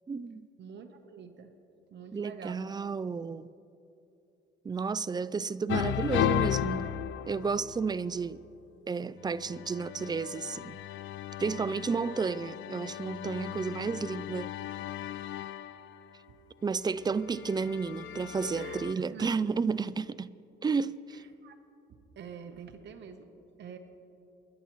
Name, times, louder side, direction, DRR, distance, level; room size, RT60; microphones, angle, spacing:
voice 1, 0.1-0.5 2.1-3.5 4.6-6.9 7.3-8.4 8.9-10.8 11.4-14.5 16.6-20.3 20.6-21.2, right 5 dB, 20° right, 0.4 m, -32 dB
voice 2, 0.6-1.5 1.9-2.7 18.5-19.4 21.1-21.6 21.9-23.3 23.6-23.8, right 6 dB, 65° right, 1.1 m, -46 dB
sound 1, 5.7-8.1 9.3-16.0 17.0-18.9, left 12 dB, 75° left, 0.5 m, -35 dB
26.0 x 11.5 x 3.1 m
cardioid pair, 90°, 20 cm